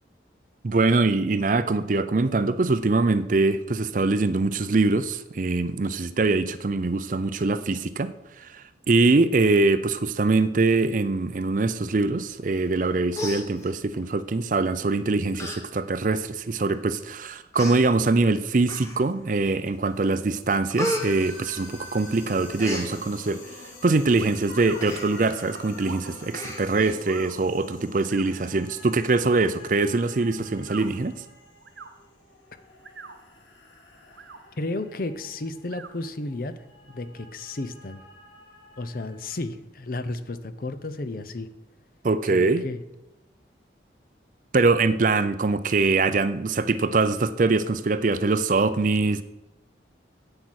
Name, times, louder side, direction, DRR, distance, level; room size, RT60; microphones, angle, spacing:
voice 1, 0.6-8.1 8.4-23.4 23.8-31.1 42.0-42.6 44.5-49.2, right 3 dB, 45° right, 0.5 m, -23 dB
Human voice, 12.7-12.8 13.1-14.0 14.8-14.9 15.3-15.6 16.0-16.1 16.9-17.0 17.5-17.8 18.6-19.2 19.7-20.0 20.3-22.0 22.3-22.9 24.8-25.1 25.5-25.6 25.8-26.0 26.3-27.0 27.3-27.4, left 1 dB, 15° left, 1.4 m, -33 dB
sound 1, 20.8-39.5, left 2 dB, 90° left, 2.3 m, -47 dB
sound 2, 24.2-24.8 25.8-26.1 27.0-27.3 28.1-28.3 29.2-29.5 30.6-30.9 31.6-31.9 32.7-33.2 34.0-34.4 35.7-35.9, right 4 dB, 80° right, 1.1 m, -42 dB
voice 2, 34.6-36.5 36.9-38.0 38.8-41.5 42.3-42.8, left 2 dB, 50° left, 0.7 m, -33 dB
8.8 x 8.0 x 6.3 m
head